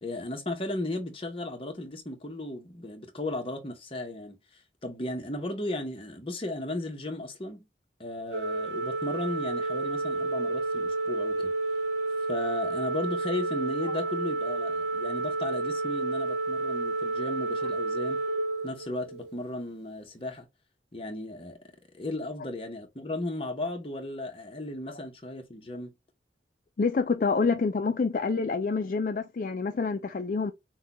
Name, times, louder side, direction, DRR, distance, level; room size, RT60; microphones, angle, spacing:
voice 1, 0.0-7.7 8.0-11.5 12.3-18.2 18.6-20.5 20.9-21.6 21.9-25.9, left 2 dB, 30° left, 0.9 m, -35 dB
Organ, 8.3-19.4, right 2 dB, 80° right, 0.5 m, -30 dB
voice 2, 26.8-30.5, left 4 dB, 50° left, 0.4 m, -27 dB
6.4 x 2.3 x 3.0 m
head